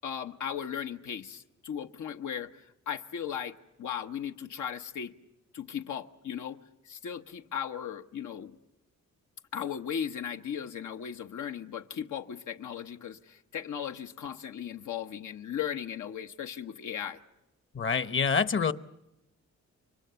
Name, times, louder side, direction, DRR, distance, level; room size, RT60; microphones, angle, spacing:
voice 1, 0.0-5.1 5.5-6.6 6.8-8.6 9.5-17.2, left 8 dB, 80° left, 5 dB, 1.1 m, -37 dB
voice 2, 17.7-18.7, left 5 dB, 40° left, 14 dB, 1.0 m, -26 dB
29.5 x 24.0 x 6.9 m, 0.92 s
cardioid pair, 110°, 29 cm